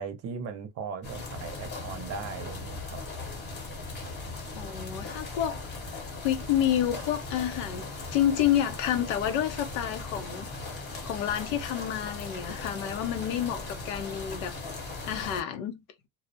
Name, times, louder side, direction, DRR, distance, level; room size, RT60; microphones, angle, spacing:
voice 1, 0.0-3.0, right 5 dB, 40° right, 0.6 m, -38 dB
sound 1, 1.0-15.4, left 3 dB, 25° left, 0.9 m, -38 dB
voice 2, 4.6-5.6 5.9-7.8 8.1-10.5 10.8-14.5 15.0-15.8, left 10 dB, 85° left, 0.7 m, -29 dB
2.3 x 2.1 x 2.6 m
cardioid pair, 135°, 39 cm